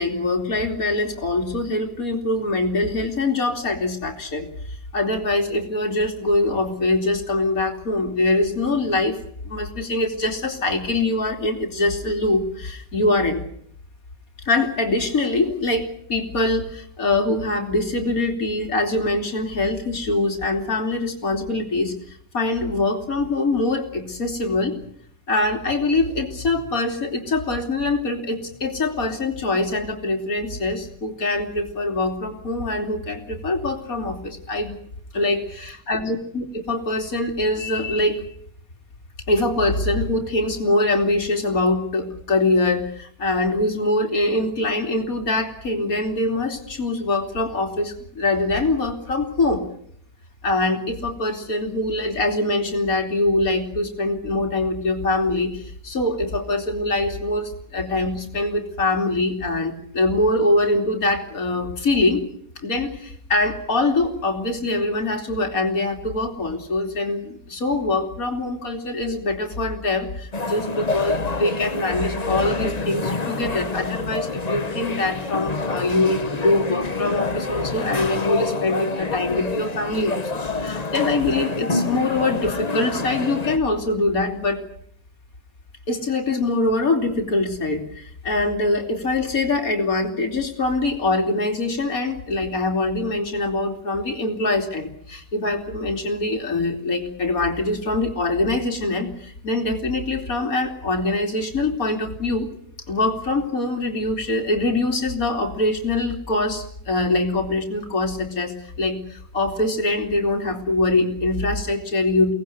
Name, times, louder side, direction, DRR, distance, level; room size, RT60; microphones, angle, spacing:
voice 1, 0.0-9.2 9.4-13.4 14.5-24.8 25.3-34.8 35.1-38.2 39.3-49.6 50.4-62.2 62.6-84.6 85.9-102.5 102.9-112.3, left 2 dB, 70° left, 4 dB, 3.5 m, -23 dB
sound 1, 70.3-83.6, left 3 dB, 30° left, 1.3 m, -27 dB
24.0 x 18.5 x 9.5 m, 0.66 s
omnidirectional pair, 1.6 m